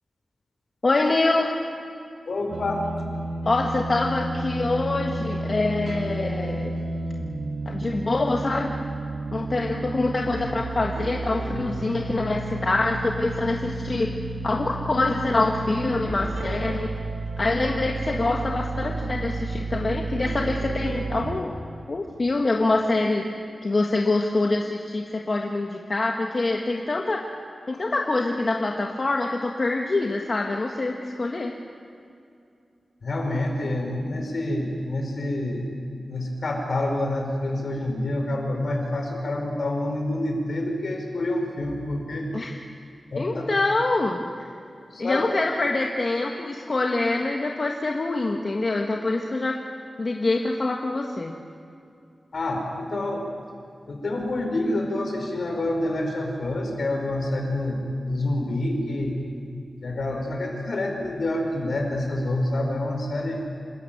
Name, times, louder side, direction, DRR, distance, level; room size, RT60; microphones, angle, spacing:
voice 1, 0.8-1.6 3.4-6.7 7.6-8.8 9.3-14.1 14.4-16.9 17.4-21.6 21.9-23.2 23.6-27.2 27.7-31.5 42.3-42.6 43.2-44.5 45.0-49.6 50.0-51.3, left 2 dB, 45° left, 1 dB, 1.5 m, -25 dB
voice 2, 2.3-2.8 33.0-35.7 36.1-42.3 43.1-43.5 44.9-45.2 52.3-53.2 53.9-59.2 59.8-63.4, left 1 dB, 65° left, 2 dB, 5.0 m, -27 dB
sound 1, 2.5-21.4, right 2 dB, 85° right, 1.8 m, -31 dB
27.0 x 14.0 x 9.2 m, 2.5 s
wide cardioid pair, 85°, 0 cm